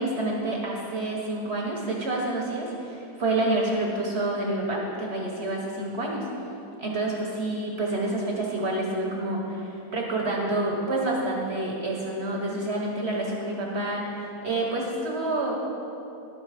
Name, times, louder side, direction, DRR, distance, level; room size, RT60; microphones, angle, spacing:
voice 1, 0.0-6.3 6.8-15.5, right 2 dB, 40° right, -2 dB, 1.1 m, -28 dB
11.5 x 5.4 x 4.9 m, 2.8 s
omnidirectional pair, 2.1 m